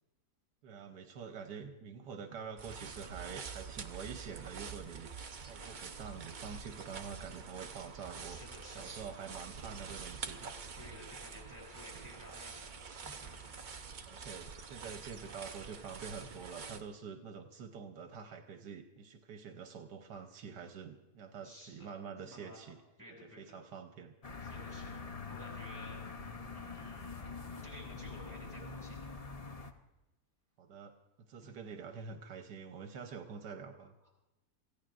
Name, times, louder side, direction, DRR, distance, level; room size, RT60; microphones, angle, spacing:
voice 1, 0.6-5.1 5.4-8.4 8.7-10.5 14.0-22.8 23.4-24.1 30.6-30.9 31.3-33.9, right 6 dB, 80° right, 5 dB, 1.5 m, -46 dB
sound 1, 2.6-16.8, right 5 dB, 45° right, 0.6 m, -46 dB
voice 2, 8.2-9.0 10.7-13.6 21.4-21.9 22.3-22.6 23.0-23.6 24.4-26.0 26.5-29.0 31.4-31.6 34.0-34.1, equal, 10° right, -3 dB, 7.0 m, -54 dB
sound 2, 24.2-29.7, left 4 dB, 35° left, 0.5 m, -45 dB
27.5 x 15.5 x 2.5 m, 0.97 s
omnidirectional pair, 1.8 m